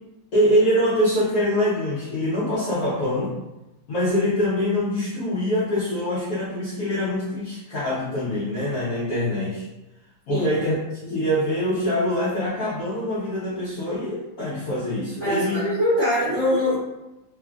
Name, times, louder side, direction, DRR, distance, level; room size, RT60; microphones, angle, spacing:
voice 1, 0.3-3.3 3.9-9.7 10.3-15.6, equal, 65° left, -9 dB, 0.9 m, -24 dB
voice 2, 15.2-16.8, equal, 55° right, -11 dB, 0.8 m, -22 dB
3.1 x 2.4 x 2.3 m, 0.98 s
omnidirectional pair, 2.2 m